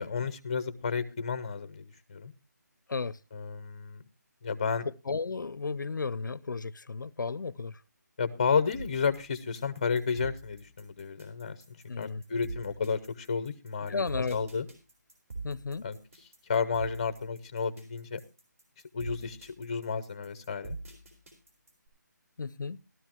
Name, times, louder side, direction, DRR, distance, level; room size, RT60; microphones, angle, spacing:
voice 1, 0.0-2.3 3.3-4.0 4.4-4.9 8.2-11.6 12.0-14.7 15.8-16.0 16.5-18.2 18.9-20.8, left 5 dB, 20° left, 0.6 m, -32 dB
voice 2, 5.1-7.8 11.9-12.2 13.9-14.4 15.4-15.9 22.4-22.8, left 4 dB, 85° left, 0.6 m, -34 dB
sound 1, 8.7-21.9, right 3 dB, 45° right, 3.9 m, -44 dB
15.0 x 12.5 x 2.9 m
hypercardioid pair, 175°, 10 cm